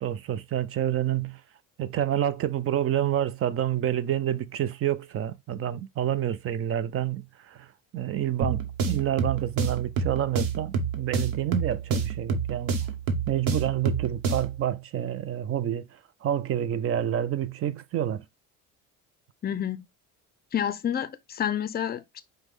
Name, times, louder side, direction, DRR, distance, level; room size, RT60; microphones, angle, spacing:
voice 1, 0.0-1.4 1.8-7.7 7.9-12.8 13.3-18.2, right 11 dB, 40° right, 0.5 m, -28 dB
sound 1, 8.4-14.6, right 5 dB, 85° right, 1.0 m, -29 dB
voice 2, 19.4-19.9 20.5-22.2, left 9 dB, 30° left, 0.4 m, -29 dB
4.9 x 2.2 x 3.5 m
cardioid pair, 115°, 34 cm